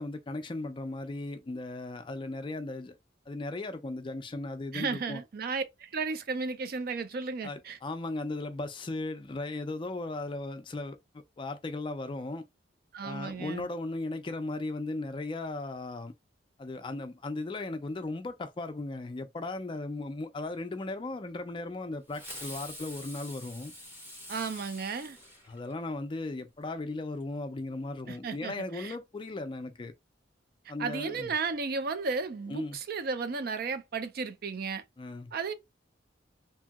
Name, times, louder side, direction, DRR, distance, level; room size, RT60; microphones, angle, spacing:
voice 1, 0.0-3.0 3.3-5.2 7.4-12.5 13.0-16.1 16.6-23.7 25.5-29.9 30.7-31.3 32.5-32.8 35.0-35.3, left 2 dB, 25° left, 0.4 m, -37 dB
voice 2, 4.7-7.8 12.9-13.7 24.3-25.2 28.1-29.0 30.8-34.8 35.3-35.5, right 4 dB, 55° right, 0.4 m, -34 dB
Fireworks, 22.1-26.0, left 1 dB, 10° right, 1.1 m, -45 dB
2.7 x 2.7 x 2.3 m
head